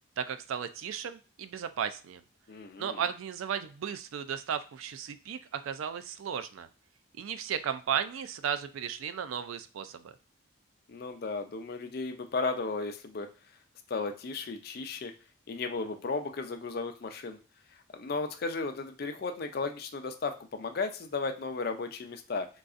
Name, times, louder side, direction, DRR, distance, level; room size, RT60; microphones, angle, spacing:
voice 1, 0.2-2.2 2.8-6.7 7.2-10.1, right 8 dB, 85° right, 10 dB, 0.3 m, -35 dB
voice 2, 2.5-3.0 10.9-13.3 13.9-15.1 15.5-17.4 17.9-22.5, left 4 dB, 50° left, 6 dB, 0.4 m, -35 dB
3.8 x 2.3 x 2.4 m, 0.35 s
head